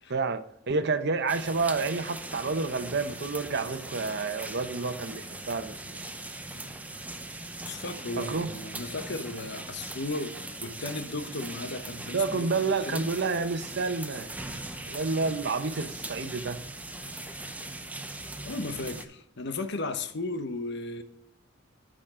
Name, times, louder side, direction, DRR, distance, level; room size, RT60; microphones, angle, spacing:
voice 1, 0.1-6.0 8.2-8.5 12.1-14.3 14.9-16.6, right 4 dB, 60° right, 0.8 m, -29 dB
sound 1, 1.3-19.1, right 2 dB, 10° right, 0.7 m, -40 dB
voice 2, 7.6-13.0 18.4-21.0, left 2 dB, 60° left, 1.0 m, -35 dB
13.0 x 5.2 x 3.7 m
head